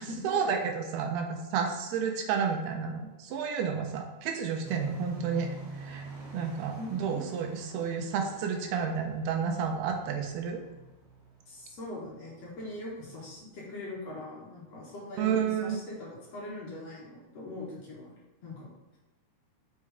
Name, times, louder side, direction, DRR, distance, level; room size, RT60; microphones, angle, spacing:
voice 1, 0.2-5.5 5.8-6.1 6.3-10.6 15.2-15.8, right 6 dB, 85° right, 3 dB, 2.8 m, -31 dB
sound 1, 4.6-13.4, right 1 dB, 60° right, 2.6 m, -47 dB
voice 2, 6.8-7.2 11.5-18.1 18.4-18.7, left 2 dB, 50° left, -5 dB, 2.2 m, -41 dB
6.4 x 5.5 x 3.5 m, 1.1 s
omnidirectional pair, 4.6 m